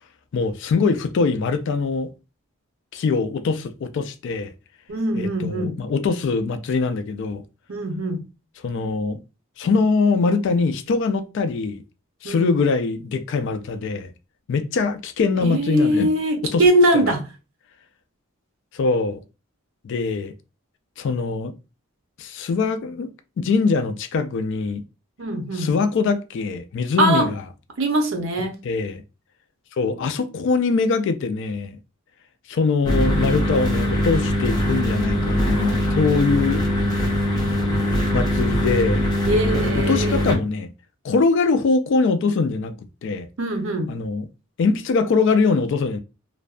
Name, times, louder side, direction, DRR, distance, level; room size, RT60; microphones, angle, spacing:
voice 1, 0.3-2.1 2.9-4.5 5.1-7.4 8.6-9.2 9.6-11.8 12.2-14.1 14.5-16.1 16.5-16.6 16.9-17.0 18.7-19.2 19.8-20.3 21.0-21.5 22.2-23.1 23.4-24.8 25.5-27.4 28.6-29.0 29.8-31.8 32.5-36.6 38.1-39.0 39.5-40.7 41.0-42.7 43.0-43.3 43.9-44.2 44.6-46.0, left 4 dB, 55° left, 0.3 m, -22 dB
voice 2, 4.9-5.8 7.7-8.2 12.2-12.5 15.4-17.2 25.2-25.7 27.0-27.3 27.8-28.5 39.3-40.2 43.4-43.9, right 1 dB, 65° right, 0.6 m, -21 dB
sound 1, 32.8-40.3, equal, 20° left, 0.6 m, -22 dB
2.5 x 2.2 x 2.3 m
head